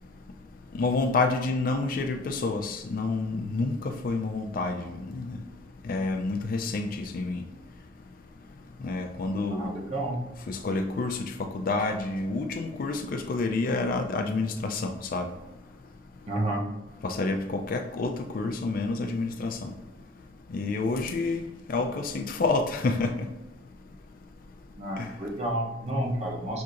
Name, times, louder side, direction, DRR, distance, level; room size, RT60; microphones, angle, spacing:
voice 1, 0.7-5.4 5.9-7.4 8.8-9.7 10.5-15.3 17.0-19.7 20.5-23.1, left 3 dB, 55° left, 6 dB, 0.4 m, -29 dB
voice 2, 9.5-10.2 16.3-16.7 24.8-26.6, right 1 dB, 40° right, -1 dB, 0.8 m, -30 dB
6.2 x 2.8 x 2.5 m, 1.0 s
head